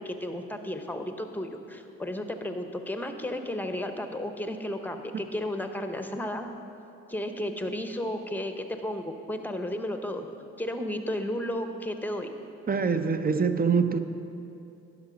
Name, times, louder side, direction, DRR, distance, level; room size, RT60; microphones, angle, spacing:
voice 1, 0.0-6.5 7.1-10.3 10.6-12.3, left 1 dB, 5° left, 6 dB, 0.8 m, -33 dB
voice 2, 12.7-14.0, right 5 dB, 30° right, 10 dB, 0.5 m, -24 dB
10.5 x 5.9 x 5.1 m, 2.7 s
supercardioid pair, 55°, 32 cm